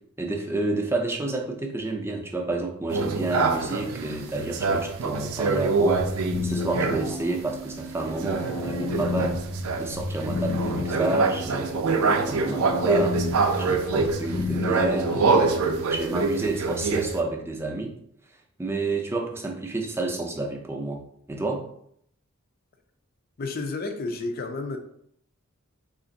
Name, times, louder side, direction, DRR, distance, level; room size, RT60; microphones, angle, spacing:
voice 1, 0.2-9.4 9.8-13.2 13.5-15.5 15.9-17.9 18.6-21.0 21.3-21.6, right 2 dB, 10° right, 1 dB, 0.4 m, -29 dB
sound 1, 2.9-7.2 8.0-17.2, right 4 dB, 85° right, 0.4 m, -26 dB
sound 2, 5.8-15.8, left 2 dB, 90° left, 0.7 m, -32 dB
voice 2, 23.4-24.8, left 3 dB, 45° left, 6 dB, 0.5 m, -31 dB
3.3 x 2.5 x 3.9 m, 0.69 s
head